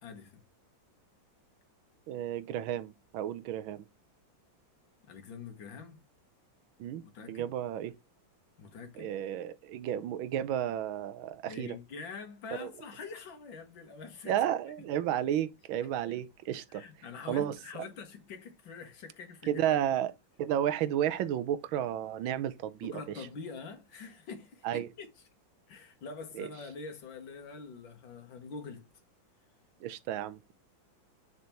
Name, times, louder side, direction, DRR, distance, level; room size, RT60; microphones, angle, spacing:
voice 1, 0.0-0.4 5.0-6.0 7.0-7.5 8.6-9.1 11.5-14.3 16.1-16.2 16.7-19.8 22.8-25.1 25.7-28.9, left 5 dB, 70° left, 2.1 m, -45 dB
voice 2, 2.1-3.8 6.8-7.0 7.3-7.9 9.0-11.8 12.6-12.7 14.3-16.8 17.3-17.5 19.5-20.1 20.4-23.0 24.6-24.9 26.3-26.5 29.8-30.6, right 11 dB, 85° right, 1.5 m, -32 dB
6.7 x 3.5 x 4.4 m
omnidirectional pair, 2.2 m